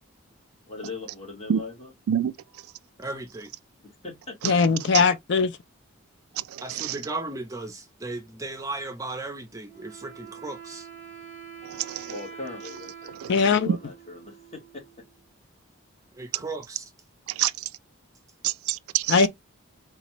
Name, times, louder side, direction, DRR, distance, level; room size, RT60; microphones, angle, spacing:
voice 1, 0.7-1.9 3.8-4.6 12.1-14.8, left 3 dB, 30° left, 1.4 m, -40 dB
voice 2, 3.0-3.5 6.6-10.9 16.2-16.9, right 2 dB, 15° right, 0.5 m, -36 dB
voice 3, 4.4-5.5 13.3-13.7 19.1-19.3, left 5 dB, 55° left, 0.4 m, -20 dB
voice 4, 6.3-7.0 11.6-12.1 13.2-13.3 13.7-13.8 16.3-16.4 17.3-17.7 18.4-19.2, right 10 dB, 80° right, 0.3 m, -27 dB
Wind instrument woodwind instrument, 9.7-15.2, right 7 dB, 5° left, 1.5 m, -45 dB
4.1 x 2.3 x 2.9 m
head